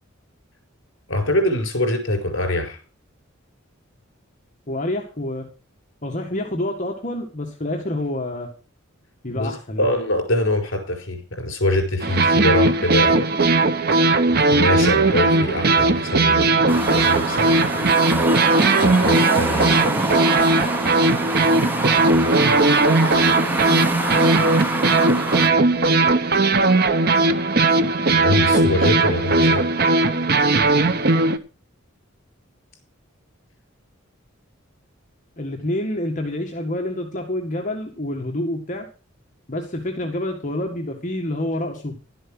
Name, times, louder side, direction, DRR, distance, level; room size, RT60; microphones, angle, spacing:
voice 1, 1.1-2.8 9.3-13.3 14.3-17.9 18.8-19.8 28.1-29.6, left 1 dB, 70° left, 5 dB, 4.4 m, -24 dB
voice 2, 4.7-5.5 6.0-8.5 9.2-9.9 35.4-38.9 39.5-42.0, left 1 dB, 40° left, 2 dB, 1.8 m, -27 dB
sound 1, 12.0-31.4, right 3 dB, 50° right, 0.9 m, -18 dB
sound 2, 16.7-25.5, right 1 dB, 10° right, 0.8 m, -26 dB
12.0 x 7.9 x 6.2 m, 0.35 s
head